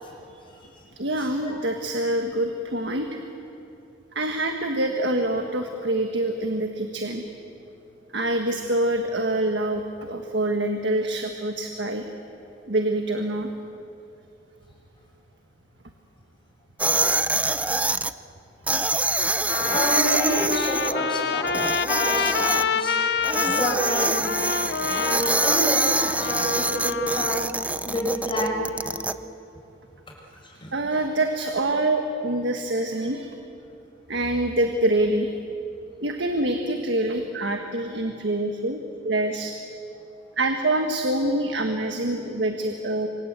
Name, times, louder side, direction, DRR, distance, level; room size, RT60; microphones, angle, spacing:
voice 1, 0.9-3.2 4.1-7.2 8.1-12.1 12.7-13.5 30.7-33.4 34.1-35.3 36.0-39.5 40.4-43.1, right 1 dB, 70° right, 4 dB, 1.6 m, -25 dB
sound 1, 16.8-18.1 18.7-20.9 21.5-22.6 23.2-29.1, right 2 dB, 10° right, 0.5 m, -25 dB
Trumpet, 18.8-18.9 19.5-27.4, left 5 dB, 65° left, 0.8 m, -27 dB
voice 2, 19.7-21.5 21.8-23.0 23.5-24.4 24.9-27.4 27.8-28.6 30.6-30.7, equal, 30° left, -1 dB, 6.2 m, -28 dB
28.0 x 25.0 x 8.2 m, 2.8 s
head